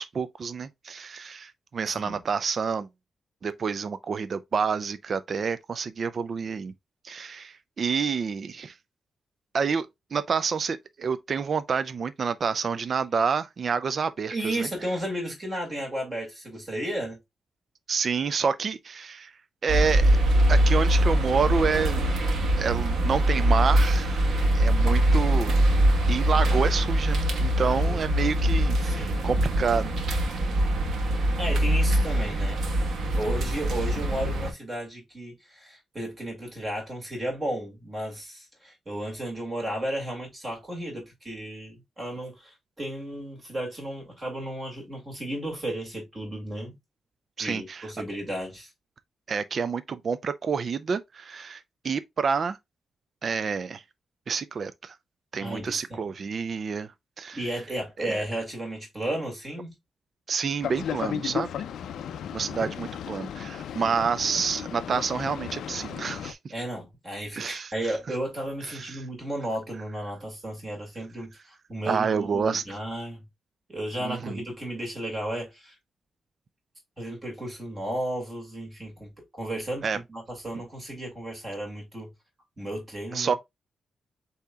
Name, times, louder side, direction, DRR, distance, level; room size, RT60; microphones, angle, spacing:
voice 1, 0.0-2.9 3.4-6.7 7.0-8.7 9.5-9.9 10.1-14.7 17.9-19.3 19.6-20.2 20.5-22.2 22.6-25.5 26.1-29.9 47.4-47.9 49.3-52.6 53.2-53.8 54.3-55.0 55.3-56.9 57.2-57.4 58.0-58.2 60.3-61.5 62.3-66.4 67.4-67.7 68.6-69.0 71.9-72.6 74.0-74.4 79.8-80.0 83.1-83.3, right 5 dB, 40° right, 0.3 m, -28 dB
voice 2, 1.9-2.2 14.3-17.2 27.6-28.0 28.8-29.3 31.4-32.6 33.1-46.8 47.4-48.7 55.4-56.0 57.3-59.7 61.0-61.4 62.6-62.7 66.5-73.2 73.7-75.7 77.0-82.1 82.6-83.3, right 1 dB, 20° right, 2.1 m, -34 dB
sound 1, 19.7-34.5, right 1 dB, 60° right, 1.2 m, -23 dB
Boat Water vehicle, 60.6-66.3, left 9 dB, 85° left, 0.4 m, -35 dB
8.2 x 2.8 x 2.3 m
wide cardioid pair, 160°, 0 cm